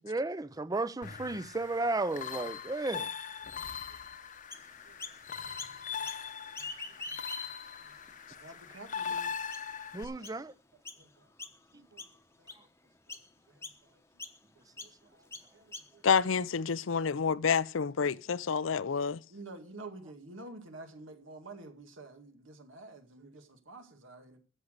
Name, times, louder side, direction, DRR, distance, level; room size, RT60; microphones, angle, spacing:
voice 1, 0.0-3.1 9.9-10.5 11.7-11.8, right 2 dB, 20° right, 0.5 m, -33 dB
sound 1, 1.0-10.0, left 7 dB, 40° left, 0.9 m, -41 dB
voice 2, 3.5-4.5 4.8-5.1 5.8-6.1 6.6-7.9 8.3-9.4 10.1-10.2 10.7-11.3 11.7-12.1 12.4-12.7 13.1-13.2 13.5-14.0 14.6-16.0 16.7-16.8 19.3-24.4, right 2 dB, 85° right, 2.2 m, -51 dB
Chirp tweet, 4.5-5.2 5.6-6.2 6.5-7.7 8.3-8.4 9.0-9.1 9.5-9.8 10.2-10.4 10.8-11.0 11.4-11.7 12.0-12.6 13.1-13.3 13.6-13.8 14.2-14.4 14.8-14.9 15.3-16.1, left 3 dB, 15° left, 0.9 m, -44 dB
voice 3, 16.0-19.2, left 6 dB, 85° left, 0.5 m, -28 dB
13.0 x 7.2 x 6.6 m
head